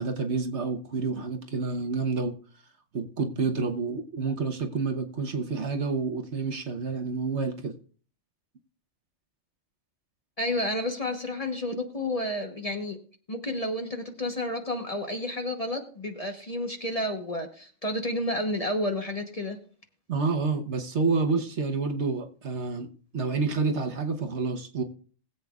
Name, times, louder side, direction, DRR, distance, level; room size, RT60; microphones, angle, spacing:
voice 1, 0.0-2.4 2.9-7.7 20.1-22.9 23.1-24.8, right 4 dB, 60° right, 1.3 m, -28 dB
voice 2, 10.4-13.0 13.3-19.6, left 1 dB, 30° left, 1.1 m, -31 dB
20.5 x 7.9 x 2.4 m
omnidirectional pair, 1.4 m